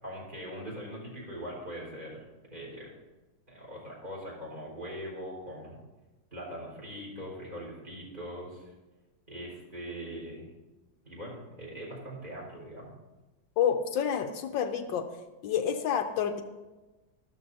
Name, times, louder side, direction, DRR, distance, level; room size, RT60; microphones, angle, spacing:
voice 1, 0.0-2.2 2.5-2.9 3.5-5.8 6.3-8.7 9.3-10.5 11.0-12.9, equal, 25° right, -4 dB, 4.8 m, -41 dB
voice 2, 13.6-15.1 15.4-16.4, left 8 dB, 80° left, 7 dB, 1.4 m, -28 dB
13.5 x 12.5 x 2.8 m, 1.1 s
omnidirectional pair, 2.1 m